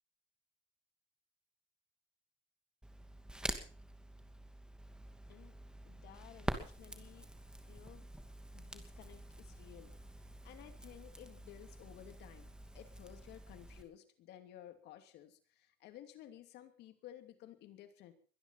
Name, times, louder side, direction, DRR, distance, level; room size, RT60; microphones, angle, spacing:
Crackle, 2.8-13.8, right 1 dB, 5° right, 2.6 m, -47 dB
voice 1, 5.3-5.6 5.8-7.3 7.7-8.1 8.5-18.1, left 12 dB, 85° left, 8 dB, 2.7 m, -56 dB
22.5 x 11.0 x 5.7 m, 0.41 s
cardioid pair, 110°, 17 cm